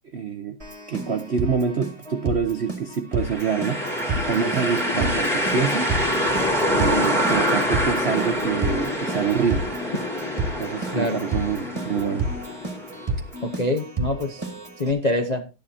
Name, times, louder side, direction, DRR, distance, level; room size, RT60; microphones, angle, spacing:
voice 1, 0.1-0.6 0.9-3.8 4.2-5.9 6.7-9.7 10.6-12.3, right 6 dB, 75° right, 0.6 m, -26 dB
Keyboard (musical), 0.6-14.9, right 2 dB, 15° right, 1.7 m, -31 dB
sound 1, 3.2-13.0, equal, ahead, 2.4 m, -25 dB
voice 2, 13.4-14.4 14.8-15.5, left 1 dB, 55° left, 0.4 m, -25 dB
13.0 x 10.5 x 2.8 m
omnidirectional pair, 2.4 m